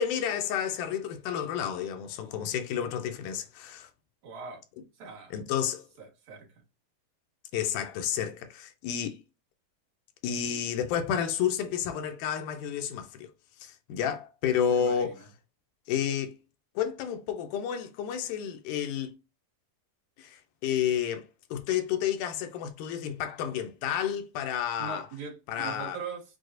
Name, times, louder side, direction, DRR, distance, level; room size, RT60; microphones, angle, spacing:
voice 1, 0.0-3.9 5.3-5.9 7.5-9.2 10.2-13.3 13.6-15.2 15.9-16.4 16.8-19.1 20.2-25.1 25.5-26.0, left 9 dB, 80° left, 2.1 m, -31 dB
voice 2, 4.2-4.6 5.0-5.3 6.0-6.5 14.7-15.3 24.8-26.2, right 5 dB, 65° right, 2.4 m, -41 dB
6.1 x 2.3 x 2.5 m
omnidirectional pair, 3.7 m